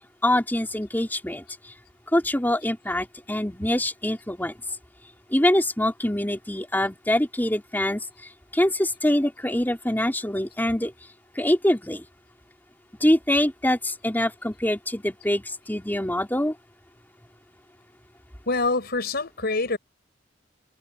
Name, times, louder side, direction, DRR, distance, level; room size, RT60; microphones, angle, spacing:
voice 1, 0.2-1.7 2.1-4.5 5.3-8.0 8.5-10.9 11.4-12.1 13.0-16.5, left 1 dB, 10° left, 3.8 m, -24 dB
voice 2, 18.5-19.8, left 3 dB, 55° left, 5.7 m, -25 dB
head